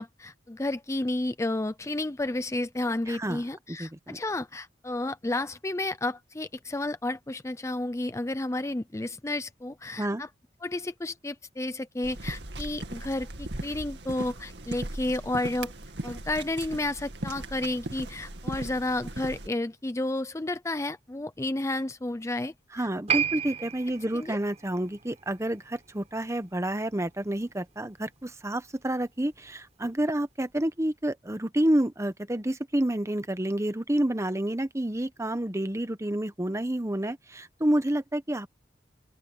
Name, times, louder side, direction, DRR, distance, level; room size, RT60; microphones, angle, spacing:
voice 1, 0.0-10.3 10.6-15.7 16.0-22.9 24.1-24.4, left 2 dB, 15° left, 0.5 m, -31 dB
voice 2, 3.1-3.4 3.8-4.2 10.0-10.2 22.7-38.5, right 1 dB, 15° right, 1.1 m, -29 dB
sound 1, 12.0-19.5, right 1 dB, 80° right, 2.3 m, -38 dB
Piano, 23.1-30.0 30.3-30.4, right 8 dB, 40° right, 4.7 m, -35 dB
open air
head